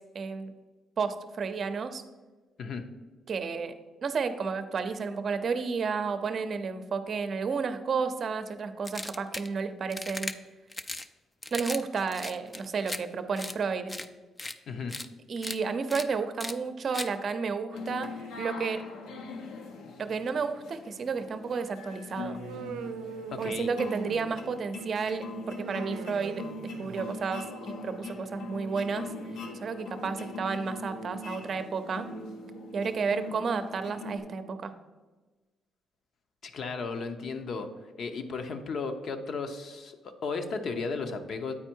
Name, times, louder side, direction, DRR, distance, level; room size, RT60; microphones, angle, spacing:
voice 1, 0.1-0.5 1.0-2.0 3.3-3.7 4.0-10.3 11.5-14.0 15.3-18.1 18.4-18.8 20.0-22.4 23.4-26.4 26.8-29.1 29.5-32.1 32.7-34.7, right 5 dB, 50° right, 9 dB, 0.6 m, -32 dB
sound 1, 8.8-9.5 9.9-10.3 10.7-11.1 11.4-11.8 12.1-13.0 13.4-13.5 13.9-14.1 14.4-14.5 14.9-15.1 15.4-15.6 15.9-16.0 16.4-16.5 16.9-17.1, left 2 dB, 15° left, 0.4 m, -37 dB
voice 2, 14.7-15.0 23.3-23.7 36.4-41.5, left 4 dB, 60° left, 7 dB, 0.8 m, -35 dB
sound 2, 17.7-34.2, left 2 dB, 85° left, 0.8 m, -41 dB
Human voice, 22.3-24.6 25.5-27.3, right 6 dB, 90° right, 0.5 m, -41 dB
8.7 x 4.4 x 4.5 m, 1.3 s
cardioid pair, 90°, 0 cm